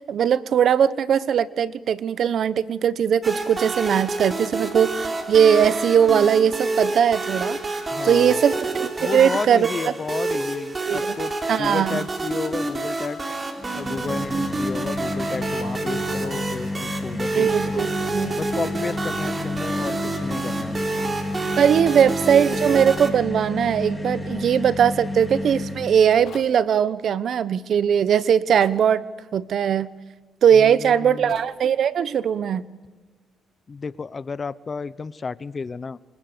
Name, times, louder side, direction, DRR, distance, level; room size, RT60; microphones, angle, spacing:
voice 1, 0.1-7.6 8.0-9.7 10.9-11.1 11.5-12.0 17.3-18.4 21.6-29.0 29.3-29.9 30.4-32.6, right 8 dB, 60° right, 17 dB, 1.1 m, -20 dB
sound 1, 3.2-23.1, right 2 dB, 30° right, 3.8 m, -28 dB
voice 2, 7.9-8.5 9.0-11.3 11.6-13.2 13.7-17.9 18.3-20.8 30.5-31.3 33.7-36.0, left 4 dB, 35° left, 18 dB, 1.0 m, -32 dB
sound 2, 13.6-26.2, left 2 dB, 5° left, 4.4 m, -31 dB
sound 3, 26.2-26.6 28.5-28.8 31.3-31.6, left 8 dB, 65° left, 2.1 m, -41 dB
28.5 x 26.0 x 6.9 m, 1.3 s
cardioid pair, 90°, 0 cm